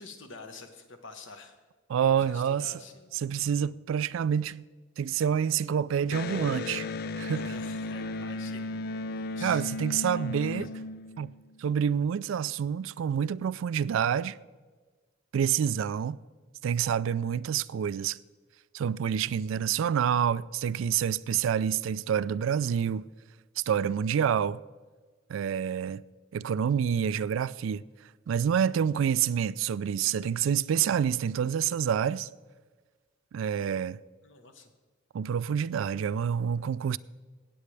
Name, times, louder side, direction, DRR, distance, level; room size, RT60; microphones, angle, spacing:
voice 1, 0.0-1.6 2.2-3.2 7.3-8.8 9.1-9.6 9.9-10.4 10.8-10.9 17.2-17.4 34.2-34.7, left 4 dB, 65° left, 1.2 m, -48 dB
voice 2, 1.9-2.7 3.2-4.7 5.0-6.9 7.2-7.4 9.4-10.7 11.2-11.3 11.6-14.4 15.3-16.2 16.6-18.2 18.7-23.1 23.6-24.6 25.3-26.0 26.3-27.8 28.3-32.3 33.3-34.0 35.1-37.0, right 8 dB, 75° right, 0.3 m, -27 dB
Electric guitar, 6.1-11.6, left 2 dB, 45° left, 0.3 m, -35 dB
16.5 x 8.6 x 3.4 m
head